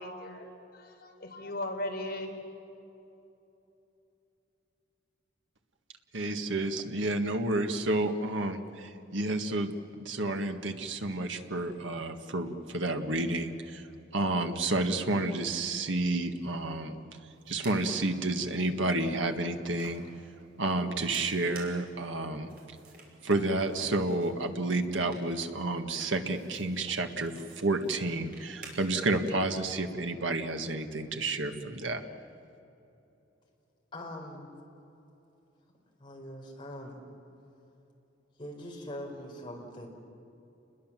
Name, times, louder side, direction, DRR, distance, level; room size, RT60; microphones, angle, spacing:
voice 1, 0.0-2.3, left 1 dB, 50° left, 1 dB, 4.1 m, -38 dB
voice 2, 6.1-13.8 14.1-16.9 17.5-20.0 20.6-22.5 23.2-32.0, right 2 dB, 75° right, 6 dB, 1.7 m, -30 dB
sound 1, 17.3-29.3, right 3 dB, 50° right, 5.5 m, -53 dB
voice 3, 33.9-34.5 36.0-37.0 38.4-39.9, left 1 dB, 25° left, 0 dB, 4.6 m, -42 dB
29.0 x 21.5 x 7.6 m, 2.9 s
head